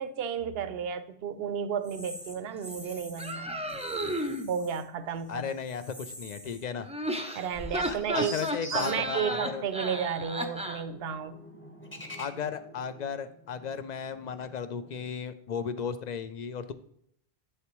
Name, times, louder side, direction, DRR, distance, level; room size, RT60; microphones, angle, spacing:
voice 1, 0.0-3.5 4.5-5.5 7.3-8.3 8.7-11.4, right 7 dB, 75° right, 0.8 m, -32 dB
sound 1, 1.8-3.4 3.7-4.8 5.2-6.8 7.1-7.2 7.7-15.1, equal, 10° left, 0.9 m, -46 dB
sound 2, 3.2-4.5 6.8-10.8, equal, 10° right, 0.4 m, -33 dB
voice 2, 5.3-6.9 7.9-9.6 12.2-16.7, left 6 dB, 55° left, 0.5 m, -35 dB
8.6 x 6.6 x 3.0 m
omnidirectional pair, 1.1 m